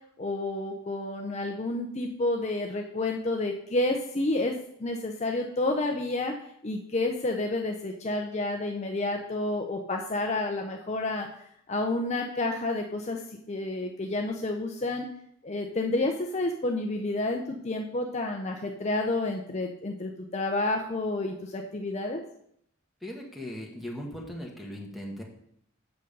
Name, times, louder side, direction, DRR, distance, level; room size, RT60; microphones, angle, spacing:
voice 1, 0.2-4.5 4.8-6.3 6.6-11.3 11.7-13.2 13.5-15.1 15.4-22.2, left 2 dB, 30° left, 3 dB, 0.6 m, -30 dB
voice 2, 23.0-25.2, equal, ahead, 0 dB, 1.3 m, -38 dB
8.0 x 6.6 x 5.3 m, 0.71 s
head